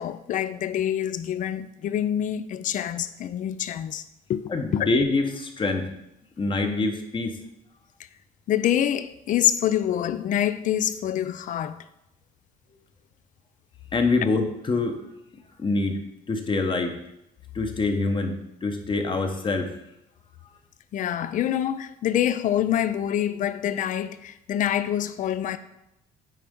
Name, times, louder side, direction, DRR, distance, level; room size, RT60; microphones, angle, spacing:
voice 1, 0.0-4.0 4.3-4.4 4.7-4.9 8.5-11.8 20.9-25.6, left 10 dB, 50° left, 0.4 m, -26 dB
voice 2, 4.5-5.9 6.4-7.3 13.9-15.0 15.6-16.0 16.3-17.0 17.5-18.4 18.6-19.7, left 3 dB, 30° left, 1.0 m, -25 dB
9.2 x 4.4 x 3.7 m
cardioid pair, 110°, 17 cm